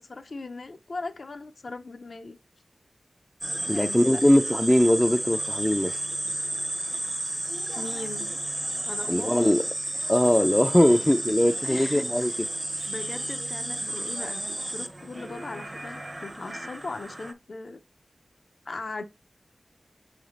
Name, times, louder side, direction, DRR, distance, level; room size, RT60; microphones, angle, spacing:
voice 1, 0.0-2.4 3.6-4.2 7.7-8.3 8.9-9.4 11.6-12.0 12.9-17.8 18.7-19.0, left 3 dB, 75° left, 0.5 m, -38 dB
sound 1, 3.4-17.3, right 1 dB, 30° right, 0.8 m, -32 dB
voice 2, 3.7-6.0 9.1-9.7 10.1-12.3, equal, 10° left, 0.3 m, -21 dB
6.2 x 3.3 x 2.4 m
cardioid pair, 45°, 0 cm